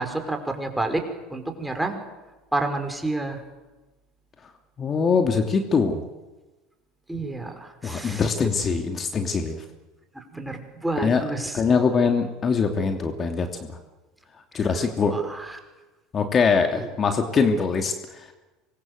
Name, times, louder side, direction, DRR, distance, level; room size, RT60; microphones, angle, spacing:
voice 1, 0.0-2.0 2.5-3.4 7.1-8.2 10.2-11.6 15.1-15.6 16.7-16.9, right 2 dB, 5° right, 5 dB, 5.2 m, -29 dB
voice 2, 4.8-6.0 7.8-9.6 11.0-11.2 11.5-13.5 14.5-15.1 16.1-18.2, left 5 dB, 35° left, 5 dB, 2.9 m, -23 dB
26.0 x 22.5 x 8.1 m, 1.1 s
hypercardioid pair, 75°, 0 cm